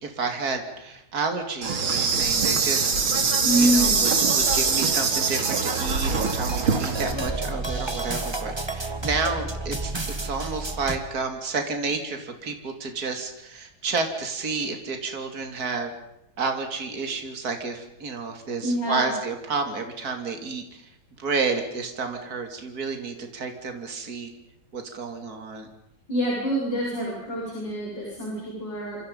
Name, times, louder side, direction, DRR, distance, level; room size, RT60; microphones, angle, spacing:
voice 1, 0.0-3.0 3.6-9.9 10.2-15.9 16.4-20.8 21.2-24.3 24.7-25.7, right 4 dB, 50° right, 5 dB, 3.3 m, -30 dB
Insect, 1.6-7.1, right 5 dB, 90° right, 3.4 m, -23 dB
voice 2, 3.4-4.0 18.6-19.1 26.1-29.0, right 1 dB, 60° left, -3 dB, 8.0 m, -26 dB
sound 1, 3.8-11.0, right 2 dB, 15° right, 1.6 m, -32 dB
27.5 x 26.5 x 5.5 m, 0.85 s
omnidirectional pair, 2.2 m